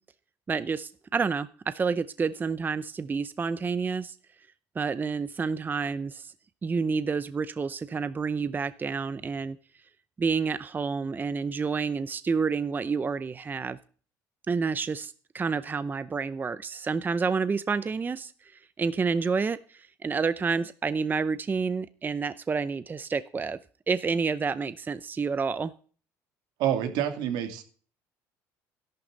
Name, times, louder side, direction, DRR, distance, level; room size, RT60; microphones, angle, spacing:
voice 1, 0.5-4.2 4.8-6.3 6.6-9.6 10.2-13.8 14.5-23.6 23.9-25.7, right 5 dB, 25° right, 14 dB, 0.6 m, -29 dB
voice 2, 26.6-27.6, right 10 dB, 80° right, 6 dB, 2.5 m, -27 dB
13.0 x 11.5 x 4.0 m, 0.42 s
supercardioid pair, 90°, 7 cm